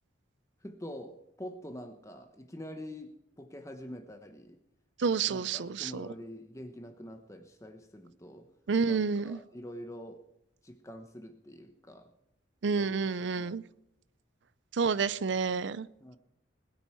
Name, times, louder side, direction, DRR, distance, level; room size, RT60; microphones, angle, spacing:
voice 1, 0.6-4.6 5.3-8.5 8.9-10.2 10.6-12.1 12.8-13.1 13.3-13.6 16.0-16.2, equal, 15° left, 6 dB, 0.9 m, -45 dB
voice 2, 5.0-6.1 8.7-9.4 12.6-13.6 14.7-15.9, right 5 dB, 70° right, 16 dB, 0.5 m, -29 dB
20.5 x 9.2 x 4.5 m, 0.83 s
head